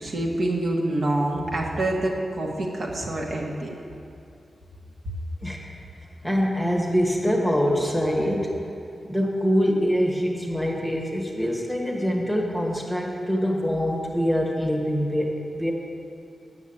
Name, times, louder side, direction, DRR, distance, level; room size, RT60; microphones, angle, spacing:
voice 1, 0.0-3.7, right 1 dB, 55° right, -1 dB, 1.3 m, -26 dB
voice 2, 6.2-8.5 9.0-15.7, equal, ahead, -1 dB, 1.2 m, -24 dB
8.2 x 6.8 x 8.5 m, 2.6 s
wide cardioid pair, 155°, 0 cm